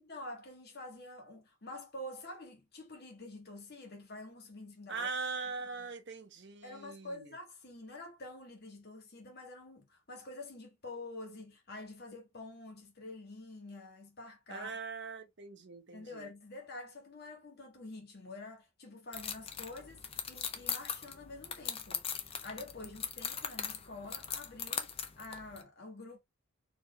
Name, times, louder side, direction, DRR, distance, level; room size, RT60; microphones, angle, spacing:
voice 1, 0.0-5.1 5.8-5.9 6.6-14.7 15.9-26.2, left 2 dB, 45° left, 1.4 m, -47 dB
voice 2, 4.9-7.3 14.5-16.3, right 4 dB, 55° right, 1.0 m, -41 dB
sound 1, 19.1-25.6, left 7 dB, 25° left, 0.5 m, -40 dB
4.3 x 2.9 x 3.1 m
head